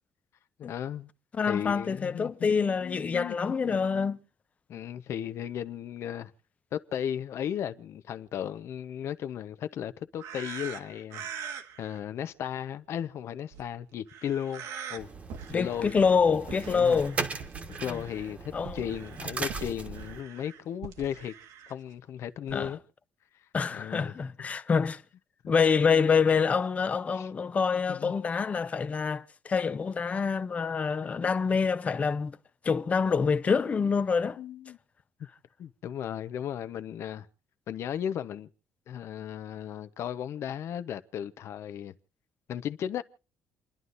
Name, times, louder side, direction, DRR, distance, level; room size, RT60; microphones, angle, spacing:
voice 1, 0.6-1.1 1.5-3.8 4.7-6.3 6.7-11.3 11.8-15.1 15.5-15.9 16.7-17.0 17.8-21.3 21.7-22.8 23.7-24.1 27.1-27.3 27.9-28.1 34.4-34.8 35.6-37.3 37.7-38.5 38.9-41.9 42.5-43.0, left 9 dB, 55° left, 0.9 m, -35 dB
voice 2, 1.3-4.2 15.5-17.2 17.9-18.0 18.5-18.8 22.5-22.7 23.5-25.0 25.5-32.4 32.6-34.4, left 5 dB, 25° left, 0.6 m, -26 dB
sound 1, 10.2-12.0 13.5-13.7 14.1-15.0 15.3-16.2 16.5-18.3 18.6-21.7 22.5-22.7, right 7 dB, 90° right, 1.7 m, -43 dB
sound 2, 15.0-20.2, right 4 dB, 25° right, 1.4 m, -38 dB
29.0 x 11.5 x 2.6 m
cardioid pair, 150°, 5 cm